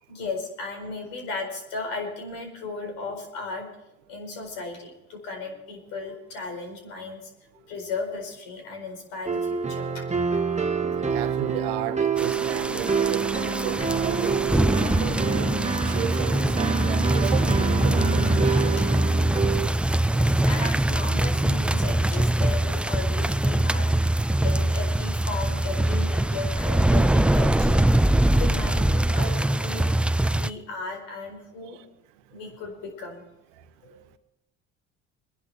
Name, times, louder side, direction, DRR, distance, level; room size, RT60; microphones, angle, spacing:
voice 1, 0.1-3.7 4.1-7.3 7.6-10.6 20.1-23.9 24.4-27.8 28.4-30.0 30.3-31.8 32.3-33.3 33.8-34.2, left 3 dB, 80° left, 4.8 m, -36 dB
sound 1, 9.3-19.7, right 5 dB, 20° right, 1.3 m, -27 dB
voice 2, 10.9-15.6 15.9-18.8, right 12 dB, 90° right, 1.1 m, -34 dB
sound 2, 12.2-30.5, right 1 dB, 5° right, 0.5 m, -23 dB
23.5 x 11.0 x 4.3 m
supercardioid pair, 80°, 34 cm